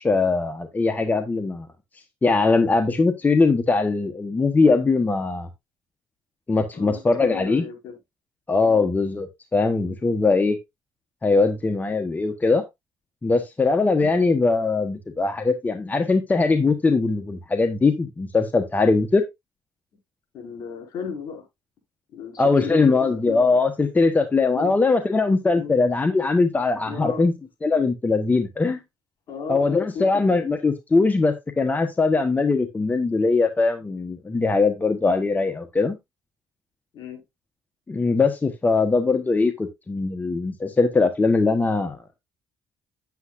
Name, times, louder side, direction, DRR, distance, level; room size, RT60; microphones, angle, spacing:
voice 1, 0.0-1.7 2.2-5.5 6.5-7.6 8.5-10.6 11.2-12.6 13.2-19.2 22.4-27.3 27.6-28.8 29.5-35.9 37.9-42.0, left 3 dB, 25° left, 1.2 m, -21 dB
voice 2, 6.7-8.0 8.6-8.9 14.0-14.2 20.3-21.4 22.1-23.5 24.5-24.7 25.5-25.7 26.8-27.2 29.3-30.5 36.9-37.2, left 6 dB, 65° left, 4.8 m, -35 dB
9.5 x 8.3 x 2.6 m
supercardioid pair, 75°, 7 cm